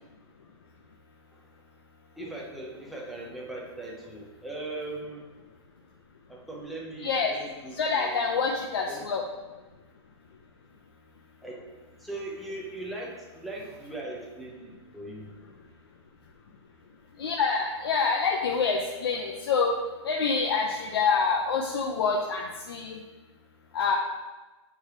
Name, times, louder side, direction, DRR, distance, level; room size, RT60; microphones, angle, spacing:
voice 1, 2.2-5.3 6.3-8.2 8.9-9.0 11.4-11.6 12.0-15.3, right 2 dB, ahead, -4 dB, 0.5 m, -39 dB
voice 2, 7.0-7.3 7.8-9.2 17.2-19.8 20.0-23.0 23.7-24.0, left 5 dB, 55° left, 1 dB, 0.5 m, -26 dB
6.9 x 4.6 x 3.2 m, 1.2 s
hypercardioid pair, 175°, 15 cm